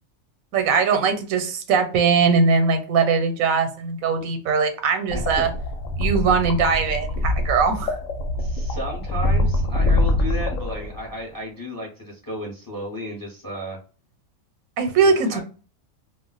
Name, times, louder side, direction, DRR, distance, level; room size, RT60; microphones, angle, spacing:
voice 1, 0.5-5.5 6.0-8.0 14.8-15.4, right 5 dB, 85° right, 1.1 m, -20 dB
sound 1, 5.1-11.2, left 1 dB, 70° left, 1.0 m, -24 dB
voice 2, 5.1-5.4 8.4-13.8 15.0-15.4, equal, 20° left, 0.7 m, -33 dB
2.4 x 2.1 x 3.8 m
omnidirectional pair, 1.4 m